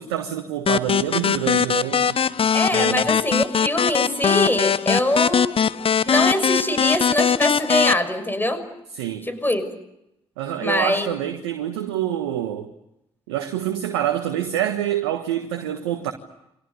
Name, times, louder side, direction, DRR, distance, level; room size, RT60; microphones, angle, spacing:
voice 1, 0.0-2.2 2.7-3.0 8.9-9.3 10.4-12.7 13.3-16.1, right 11 dB, 80° right, 1.4 m, -26 dB
sound 1, 0.7-7.9, left 7 dB, 45° left, 0.9 m, -21 dB
voice 2, 2.5-5.6 5.9-8.6 9.2-9.6 10.6-11.1, left 1 dB, 15° left, 6.3 m, -23 dB
29.5 x 25.0 x 6.8 m
figure-of-eight pair, 40°, 14 cm